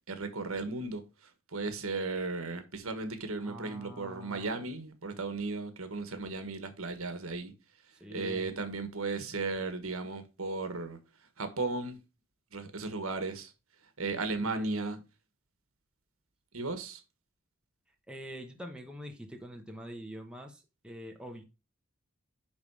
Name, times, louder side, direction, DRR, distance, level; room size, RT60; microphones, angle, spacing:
voice 1, 0.1-1.0 1.5-7.5 8.1-11.0 11.4-12.0 12.5-13.5 14.0-15.0 16.5-17.0, right 3 dB, 75° right, 1.5 m, -35 dB
voice 2, 3.4-4.5 8.0-8.4 14.4-14.8 18.1-21.4, equal, 5° right, 1.0 m, -45 dB
10.5 x 3.6 x 4.8 m
head